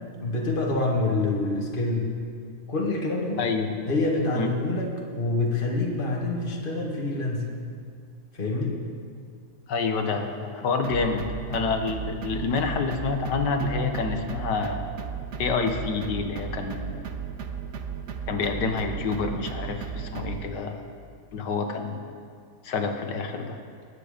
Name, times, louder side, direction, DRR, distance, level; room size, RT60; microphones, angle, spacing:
voice 1, 0.2-2.1 2.7-3.5 3.9-7.5 8.3-8.8, left 2 dB, 30° left, -2 dB, 2.0 m, -26 dB
voice 2, 3.4-3.7 4.3-4.5 9.7-14.8 15.4-17.0 18.3-20.8 21.3-22.0 22.6-23.6, left 4 dB, 90° left, 5 dB, 1.8 m, -28 dB
sound 1, 10.8-20.5, right 7 dB, 55° right, 0.9 m, -35 dB
21.0 x 9.2 x 5.1 m, 2.2 s
omnidirectional pair, 1.8 m